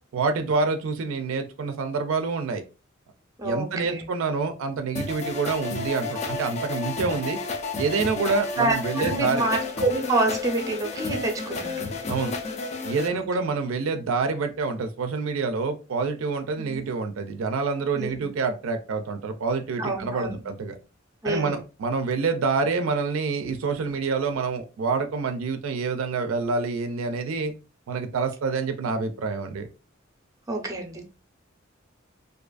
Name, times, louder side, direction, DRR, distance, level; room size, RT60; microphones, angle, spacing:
voice 1, 0.1-2.6 3.4-7.4 7.7-9.4 12.1-12.3 12.8-20.8 21.2-27.5 27.9-29.7, right 4 dB, 75° right, 7 dB, 0.4 m, -27 dB
voice 2, 3.4-4.0 8.6-11.8 13.1-13.3 16.6-16.8 17.9-18.3 19.8-20.4 21.2-21.6 30.5-31.0, right 2 dB, 15° right, 2 dB, 0.5 m, -27 dB
sound 1, 4.9-13.1, left 3 dB, 35° left, 0.3 m, -31 dB
2.6 x 2.4 x 2.2 m, 0.31 s
head